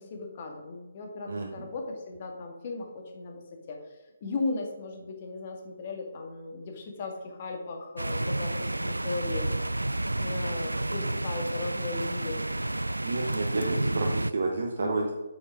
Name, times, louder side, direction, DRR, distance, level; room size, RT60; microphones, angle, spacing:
voice 1, 0.0-9.5 10.2-12.4 14.8-15.1, left 3 dB, 35° left, 3 dB, 2.0 m, -37 dB
sound 1, 8.0-14.3, right 1 dB, 80° right, 0.3 m, -30 dB
voice 2, 13.0-15.1, right 3 dB, 55° right, 0 dB, 1.3 m, -30 dB
8.5 x 7.1 x 5.0 m, 1.1 s
figure-of-eight pair, 140°, 0 cm